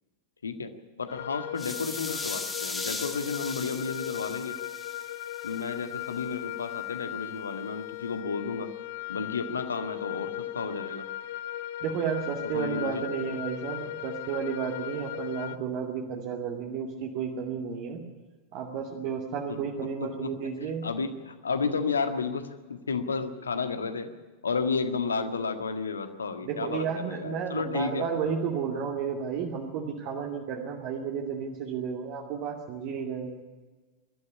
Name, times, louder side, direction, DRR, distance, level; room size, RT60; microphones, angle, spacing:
voice 1, 1.0-4.6 5.4-8.7 9.1-11.1 12.5-13.0 20.0-20.5 20.8-22.4 22.7-24.1 24.4-28.1, left 5 dB, 70° left, 8 dB, 1.7 m, -32 dB
sound 1, 1.1-15.6, left 14 dB, 50° left, 0.9 m, -38 dB
sound 2, 1.6-5.6, left 3 dB, 10° left, 2.2 m, -38 dB
voice 2, 11.8-18.0 18.5-20.9 26.4-33.4, right 6 dB, 45° right, 0 dB, 2.4 m, -32 dB
21.0 x 13.0 x 9.9 m, 1.3 s
figure-of-eight pair, 90°, 0 cm